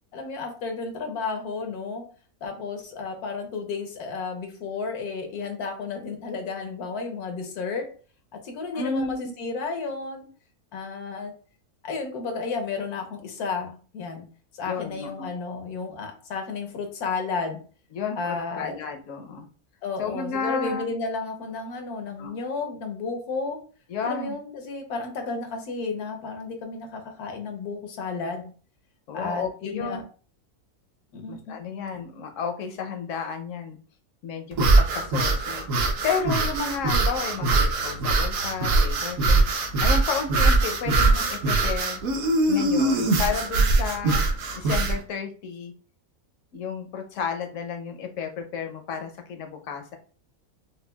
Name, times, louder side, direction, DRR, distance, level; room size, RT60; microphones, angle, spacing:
voice 1, 0.1-2.0 2.4-7.8 8.4-10.3 10.7-11.3 11.8-14.2 14.5-17.6 18.2-18.7 19.8-23.6 24.0-28.5 29.1-30.0 31.1-31.8, left 4 dB, 85° left, 5 dB, 1.3 m, -32 dB
voice 2, 8.7-9.3 14.6-15.3 17.9-19.5 20.0-20.9 22.2-22.3 23.9-24.3 29.1-30.0 31.3-33.8 34.2-39.4 39.8-42.0 42.5-44.2 44.6-45.7 46.5-50.0, left 5 dB, 70° left, 5 dB, 0.9 m, -32 dB
sound 1, 34.5-45.0, right 3 dB, 65° right, 1.1 m, -22 dB
5.2 x 2.2 x 2.2 m, 0.40 s
omnidirectional pair, 1.6 m